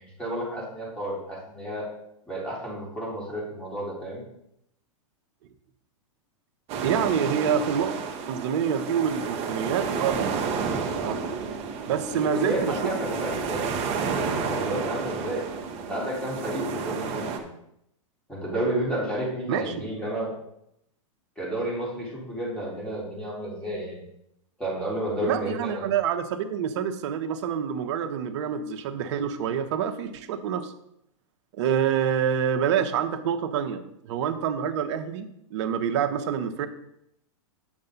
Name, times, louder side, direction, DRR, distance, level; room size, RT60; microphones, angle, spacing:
voice 1, 0.0-1.9 2.3-4.2 12.1-15.4 15.9-17.5 18.3-20.3 21.4-24.0 24.6-25.9, right 1 dB, 5° left, -6 dB, 3.8 m, -31 dB
sound 1, 6.7-17.4, right 5 dB, 35° right, 1.2 m, -31 dB
voice 2, 6.8-7.9 8.3-10.4 11.0-11.4 11.9-12.8 19.5-19.7 25.2-30.7 31.6-36.7, right 8 dB, 55° right, 9 dB, 1.0 m, -27 dB
8.6 x 6.6 x 3.9 m, 0.78 s
hypercardioid pair, 125°, 17 cm